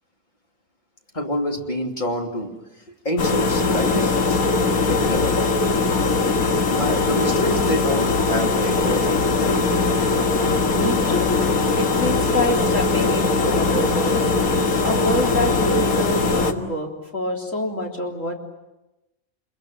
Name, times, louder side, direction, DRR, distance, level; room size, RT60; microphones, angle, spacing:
voice 1, 1.1-2.6 3.0-4.4 4.9-5.5 6.7-9.7, left 1 dB, 30° left, 2 dB, 3.0 m, -27 dB
Kitchen Ambience, 3.2-16.5, left 3 dB, 80° left, 2.0 m, -20 dB
voice 2, 10.7-11.5 11.7-14.2 14.8-18.4, left 1 dB, 60° left, 1 dB, 4.0 m, -26 dB
27.0 x 22.0 x 9.2 m, 0.99 s
omnidirectional pair, 1.5 m